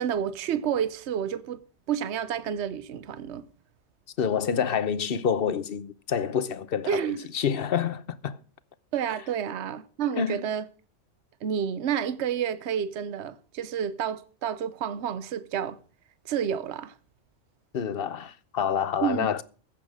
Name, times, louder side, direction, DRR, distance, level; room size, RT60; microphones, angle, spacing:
voice 1, 0.0-1.6 1.9-3.4 6.9-7.2 8.9-10.6 11.4-15.8 16.2-16.9 19.0-19.3, right 8 dB, 70° right, 1.1 m, -29 dB
voice 2, 4.2-8.4 10.2-10.4 17.7-19.4, left 7 dB, 55° left, 0.9 m, -28 dB
15.0 x 7.3 x 6.4 m
omnidirectional pair, 1.2 m